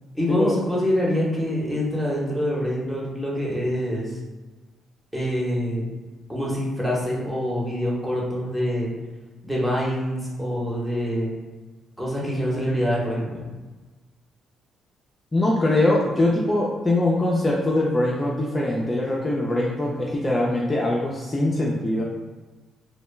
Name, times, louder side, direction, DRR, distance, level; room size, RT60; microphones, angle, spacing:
voice 1, 0.1-4.2 5.1-5.8 6.3-8.9 9.4-11.3 12.0-13.5, equal, 10° right, -5 dB, 0.8 m, -25 dB
voice 2, 15.3-22.0, left 1 dB, 20° left, -4 dB, 0.4 m, -22 dB
2.2 x 2.0 x 3.2 m, 1.2 s
cardioid pair, 90°, 0 cm